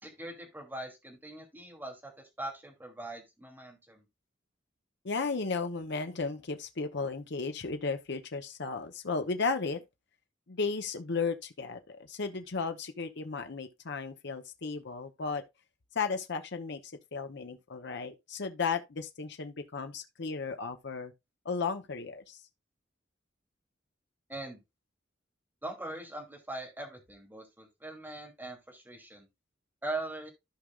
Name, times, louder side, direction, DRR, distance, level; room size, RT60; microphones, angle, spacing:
voice 1, 0.0-4.0 24.3-24.6 25.6-29.3 29.8-30.3, right 2 dB, 10° right, 2.7 m, -41 dB
voice 2, 5.0-9.8 10.5-15.4 15.9-21.1 21.4-22.4, left 4 dB, 65° left, 0.9 m, -34 dB
14.5 x 5.1 x 2.4 m
head